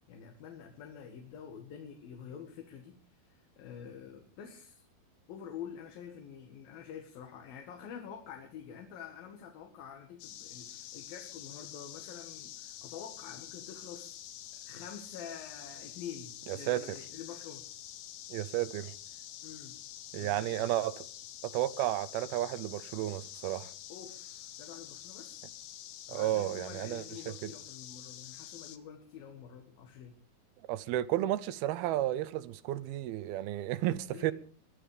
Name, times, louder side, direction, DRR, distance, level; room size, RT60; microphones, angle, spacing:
voice 1, 0.1-4.8 5.3-14.2 14.6-17.6 19.4-19.8 20.1-20.7 23.9-25.4 26.1-30.2 34.1-34.3, left 8 dB, 65° left, 3.6 m, -47 dB
sound 1, 10.2-28.8, left 12 dB, 90° left, 3.2 m, -47 dB
voice 2, 16.5-16.8 18.3-18.9 20.1-20.9 21.4-23.7 26.1-27.5 30.7-34.3, right 14 dB, 80° right, 2.7 m, -32 dB
22.0 x 12.5 x 5.1 m
omnidirectional pair, 4.6 m